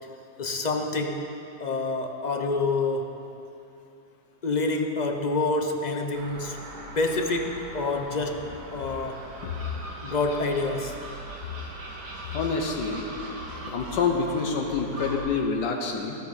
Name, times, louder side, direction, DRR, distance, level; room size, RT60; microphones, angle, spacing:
voice 1, 0.4-1.2 1.6-3.1 4.4-6.6 6.9-9.2 10.0-11.0 13.7-13.8, left 3 dB, 45° left, 4 dB, 0.6 m, -27 dB
Gull seagull, 6.1-15.2, right 1 dB, 70° right, 2.6 m, -40 dB
voice 2, 12.3-13.0 13.7-16.2, left 5 dB, 75° left, 2 dB, 1.7 m, -27 dB
16.5 x 14.0 x 4.2 m, 2.8 s
omnidirectional pair, 1.9 m